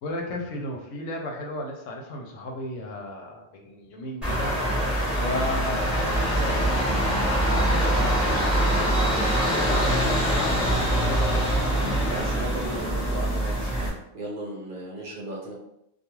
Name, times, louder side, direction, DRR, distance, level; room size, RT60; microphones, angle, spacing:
voice 1, 0.0-4.5 5.2-10.5 10.9-11.2, left 1 dB, 85° left, 1 dB, 1.0 m, -34 dB
sound 1, 4.2-13.9, right 1 dB, ahead, 0.8 m, -24 dB
voice 2, 11.8-13.9 14.1-15.5, right 1 dB, 55° right, -4 dB, 0.6 m, -36 dB
2.3 x 2.3 x 3.0 m, 0.81 s
omnidirectional pair, 1.3 m